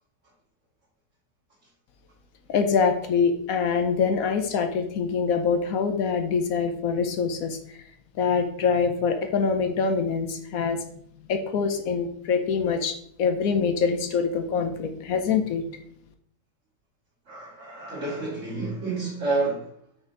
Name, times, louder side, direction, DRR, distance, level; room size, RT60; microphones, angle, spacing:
voice 1, 2.5-7.6 8.2-10.8 11.3-15.6, left 5 dB, 65° left, 1.0 m, -24 dB
voice 2, 17.3-19.7, right 3 dB, 45° right, 2.5 m, -29 dB
6.0 x 4.3 x 3.8 m
omnidirectional pair, 1.8 m